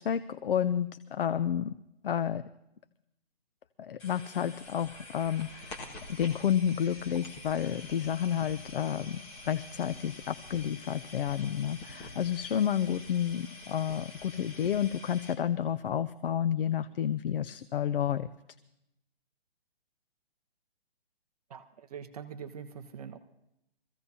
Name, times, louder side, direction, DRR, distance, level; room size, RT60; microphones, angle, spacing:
voice 1, 0.0-1.8 2.0-2.4 3.8-9.2 9.5-18.3, left 9 dB, 60° left, 12 dB, 0.6 m, -30 dB
sound 1, 4.0-15.3, left 2 dB, 20° left, 1.6 m, -47 dB
voice 2, 21.5-23.2, right 7 dB, 40° right, 8 dB, 0.8 m, -43 dB
24.0 x 15.5 x 2.8 m, 0.83 s
hypercardioid pair, 160°, 31 cm